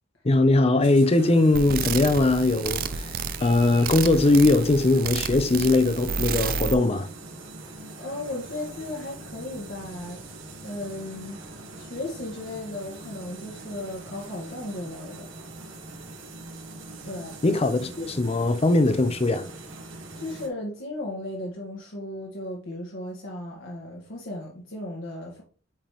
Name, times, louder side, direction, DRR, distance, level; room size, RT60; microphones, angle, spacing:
voice 1, 0.2-3.2 3.4-7.1 17.4-19.5, left 2 dB, 30° left, 0.6 m, -20 dB
sound 1, 0.8-20.5, right 2 dB, 85° right, 1.5 m, -42 dB
sound 2, 1.5-6.7, right 5 dB, 50° right, 0.4 m, -31 dB
voice 2, 8.0-10.2 10.6-11.4 11.8-15.3 17.0-17.3 20.1-25.4, left 1 dB, 70° left, 1.4 m, -35 dB
8.8 x 3.5 x 3.0 m
head